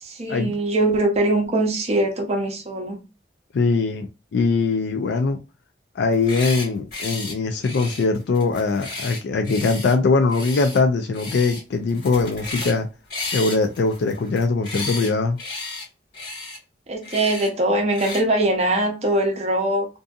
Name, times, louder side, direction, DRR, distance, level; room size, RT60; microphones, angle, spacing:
voice 1, 0.0-3.0 16.9-19.9, right 1 dB, 35° right, 0.6 m, -22 dB
voice 2, 3.5-5.4 6.0-12.9 13.3-15.4, left 4 dB, 70° left, 0.4 m, -21 dB
sound 1, 6.1-6.7 6.9-7.3 7.6-9.9 10.3-10.8 11.1-11.6 11.9-12.8 13.1-15.1 15.4-15.8 16.1-16.6 17.0-17.5 17.9-18.2, left 3 dB, 55° left, 1.5 m, -33 dB
2.6 x 2.5 x 2.3 m
head